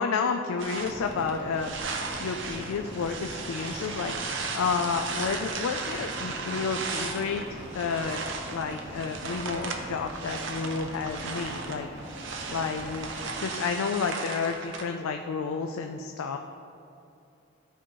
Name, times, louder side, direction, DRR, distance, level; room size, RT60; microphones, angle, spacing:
voice 1, 0.0-1.8 2.2-8.2 8.5-11.9 12.5-13.1 13.4-16.4, left 5 dB, 85° left, 5 dB, 0.4 m, -31 dB
sound 1, 0.6-14.8, right 4 dB, 65° right, 0.6 m, -36 dB
sound 2, 0.7-13.4, equal, 15° right, 0.9 m, -42 dB
12.0 x 4.4 x 3.0 m, 2.6 s
head